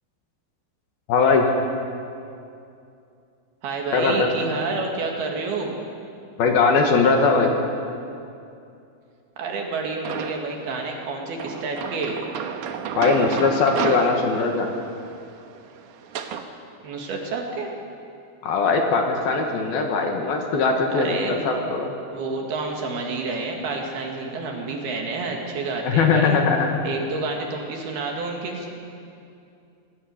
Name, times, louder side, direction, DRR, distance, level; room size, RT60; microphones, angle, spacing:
voice 1, 1.1-1.5 3.9-4.3 6.4-7.5 13.0-14.7 18.4-21.9 25.8-26.7, left 4 dB, 65° left, 2 dB, 3.0 m, -20 dB
voice 2, 3.6-5.8 9.4-12.2 16.8-17.7 20.9-21.5 22.1-26.4 26.8-28.7, right 3 dB, 65° right, 1 dB, 3.7 m, -29 dB
sound 1, 10.1-10.7 11.4-16.5, right 7 dB, 80° right, 1.8 m, -31 dB
26.5 x 16.5 x 6.7 m, 2.6 s
omnidirectional pair, 5.2 m